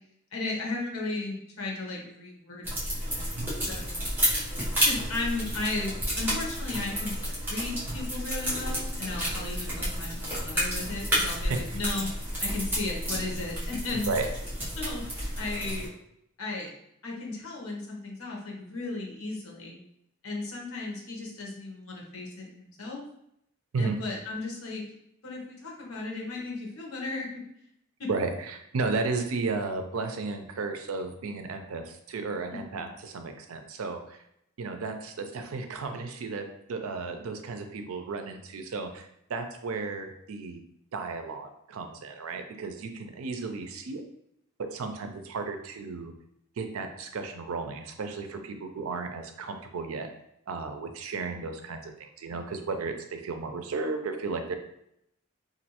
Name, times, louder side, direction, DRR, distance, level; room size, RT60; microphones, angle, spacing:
voice 1, 0.3-3.4 3.7-4.0 4.8-12.1 12.4-14.1 14.8-15.9 16.4-16.7 17.0-19.8 20.2-23.0 23.8-24.8 25.2-27.4 28.0-28.1 32.5-32.9, left 3 dB, 85° left, -1 dB, 0.9 m, -35 dB
sound 1, 2.6-15.9, equal, 10° right, 0.9 m, -31 dB
voice 2, 28.1-34.2 34.6-40.6 40.9-44.0 44.7-46.1 46.6-50.1 50.5-54.6, right 4 dB, 85° right, 6 dB, 0.5 m, -34 dB
3.1 x 2.5 x 2.9 m, 0.77 s
head